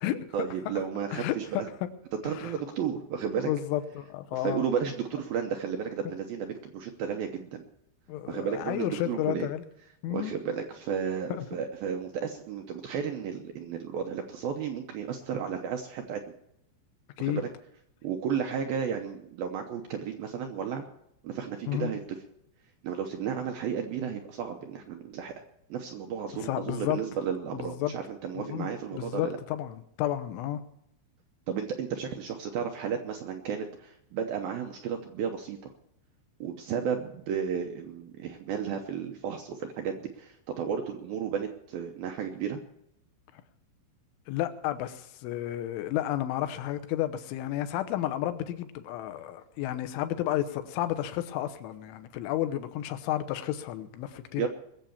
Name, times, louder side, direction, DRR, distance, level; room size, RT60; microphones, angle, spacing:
voice 1, 0.3-1.7 2.2-3.5 4.3-7.6 8.3-9.5 10.1-16.3 17.2-17.5 18.0-20.8 21.2-22.2 22.8-25.3 25.7-29.4 31.5-35.7 36.4-42.6 54.4-54.5, right 7 dB, 75° right, 4 dB, 2.2 m, -33 dB
voice 2, 1.1-1.9 2.2-2.5 3.4-4.6 8.1-9.6 10.0-10.3 11.3-11.5 17.2-17.4 21.7-21.9 26.3-27.0 27.5-27.9 28.3-30.6 43.3-43.4 44.3-54.5, left 13 dB, 90° left, 10 dB, 3.4 m, -32 dB
21.0 x 7.5 x 7.0 m, 0.76 s
omnidirectional pair, 5.3 m